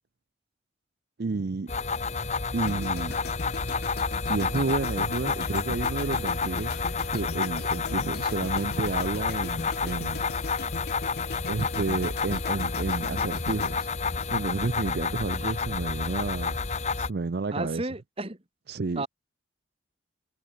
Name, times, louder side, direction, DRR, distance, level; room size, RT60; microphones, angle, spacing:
voice 1, 1.2-1.7 2.5-3.2 4.3-10.2 11.5-16.6 17.0-17.9 18.7-19.1, right 3 dB, 50° right, 0.5 m, -31 dB
sound 1, 1.7-17.1, left 4 dB, 35° left, 0.9 m, -30 dB
sound 2, 2.7-14.9 15.1-15.4, left 5 dB, 50° left, 0.5 m, -40 dB
voice 2, 17.5-18.4 19.0-19.1, right 2 dB, 30° right, 1.6 m, -32 dB
head